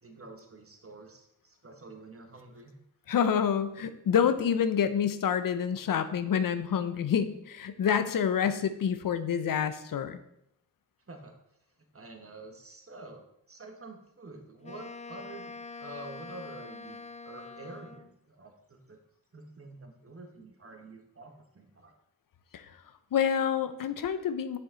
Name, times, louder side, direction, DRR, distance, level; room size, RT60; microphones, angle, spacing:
voice 1, 0.0-2.7 11.1-11.3 11.9-15.5 15.8-19.0 19.3-21.9, right 2 dB, 40° right, 4 dB, 1.4 m, -48 dB
voice 2, 3.1-10.2 22.5-22.7 23.1-24.6, left 8 dB, 80° left, 11 dB, 0.6 m, -27 dB
Wind instrument woodwind instrument, 14.6-18.2, left 4 dB, 20° left, 0.3 m, -45 dB
7.1 x 5.8 x 3.8 m, 0.77 s
cardioid pair, 55°, 33 cm